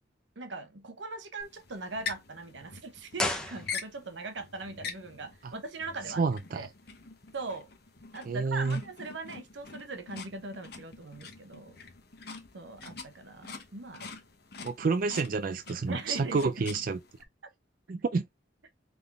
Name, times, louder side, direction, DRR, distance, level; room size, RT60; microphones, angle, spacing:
voice 1, 0.4-6.2 6.5-6.7 7.3-7.7 8.1-11.8 12.5-14.1 15.9-16.7, right 3 dB, 85° right, 1.0 m, -40 dB
sound 1, 1.4-17.2, left 5 dB, 60° left, 1.1 m, -45 dB
sound 2, 3.1-4.2 4.5-4.6, left 1 dB, 5° left, 0.8 m, -33 dB
voice 2, 6.2-6.7 8.3-8.8 14.6-17.0 17.9-18.3, right 4 dB, 50° right, 0.4 m, -29 dB
3.8 x 3.6 x 3.4 m
head